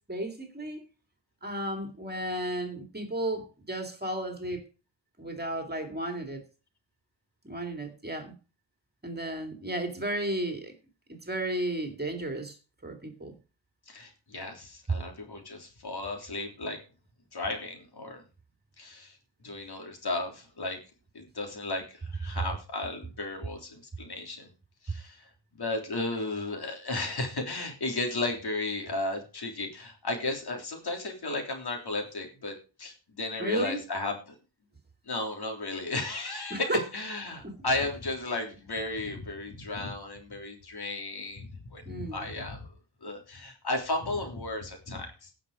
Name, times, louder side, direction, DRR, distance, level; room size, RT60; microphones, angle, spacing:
voice 1, 0.1-0.9 1.4-4.6 5.2-6.4 7.4-8.3 9.0-10.7 11.1-12.6 12.8-13.3 33.4-33.8 36.5-36.8 37.4-37.6 41.9-42.3, right 1 dB, 20° right, 5 dB, 2.5 m, -33 dB
voice 2, 13.9-16.8 17.3-18.2 18.8-19.1 19.4-20.8 21.2-24.5 24.8-25.2 25.6-32.5 32.8-34.2 35.1-42.7 43.0-45.3, left 2 dB, 60° left, 3 dB, 3.4 m, -34 dB
17.5 x 6.0 x 4.9 m, 0.33 s
wide cardioid pair, 110°, 44 cm